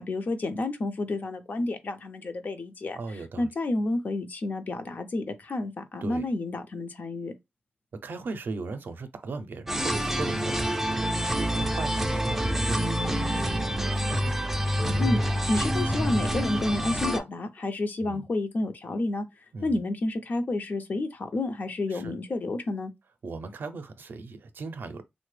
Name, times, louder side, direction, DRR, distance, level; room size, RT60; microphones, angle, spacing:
voice 1, 0.0-3.0 3.4-7.3 15.0-19.2 19.6-22.9, left 2 dB, 55° left, 0.5 m, -30 dB
voice 2, 3.0-3.5 6.0-6.3 7.9-14.5 18.0-18.3 19.5-19.8 21.9-22.2 23.2-25.0, right 3 dB, 70° right, 0.4 m, -38 dB
sound 1, 9.7-17.2, equal, 10° right, 0.4 m, -27 dB
3.3 x 2.1 x 3.2 m
wide cardioid pair, 160°, 4 cm